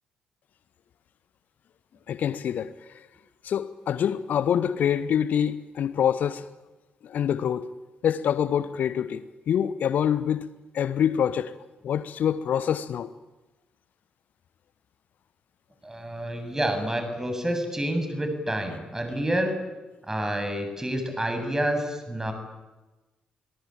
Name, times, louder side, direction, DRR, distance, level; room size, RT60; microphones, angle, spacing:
voice 1, 2.1-3.1 3.4-6.5 7.0-7.7 8.0-10.5 10.7-11.5 11.8-13.1, left 9 dB, 50° left, 1.0 m, -26 dB
voice 2, 15.8-19.6 20.1-22.3, right 1 dB, 15° right, 7.8 m, -28 dB
28.5 x 23.0 x 9.0 m
figure-of-eight pair, 40°, 4 cm